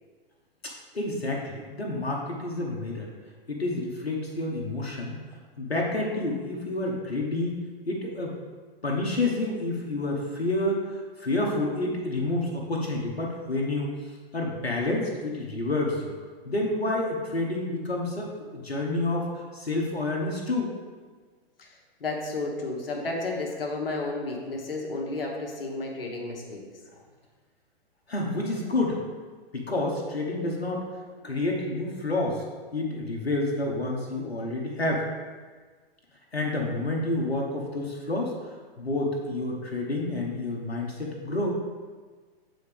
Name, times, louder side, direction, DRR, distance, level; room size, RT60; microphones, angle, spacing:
voice 1, 0.6-3.1 3.5-5.2 5.6-7.6 7.9-8.3 8.8-13.9 14.3-16.1 16.4-20.7 28.1-29.0 29.5-30.9 31.2-32.4 32.7-35.1 36.3-41.6, left 2 dB, 85° left, -1 dB, 1.0 m, -29 dB
voice 2, 22.0-26.6, left 2 dB, 65° left, 0 dB, 1.2 m, -32 dB
7.9 x 4.0 x 3.5 m, 1.4 s
figure-of-eight pair, 110°, 30 cm